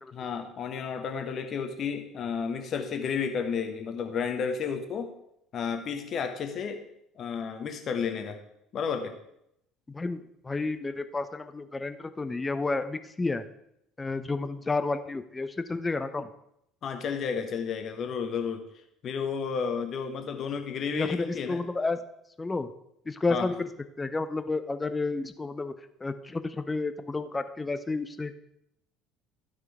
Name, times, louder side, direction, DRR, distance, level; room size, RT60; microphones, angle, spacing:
voice 1, 0.1-5.1 5.5-6.8 7.2-8.4 8.7-9.1 16.8-18.7 19.0-21.6 23.3-23.5, left 6 dB, 40° left, 6 dB, 1.3 m, -32 dB
voice 2, 9.9-13.4 14.0-16.3 20.9-22.0 22.4-22.7 23.1-23.7 24.0-25.7 26.0-28.4, left 3 dB, 15° left, 11 dB, 0.8 m, -31 dB
12.0 x 6.0 x 4.9 m, 0.78 s
figure-of-eight pair, 60°, 0 cm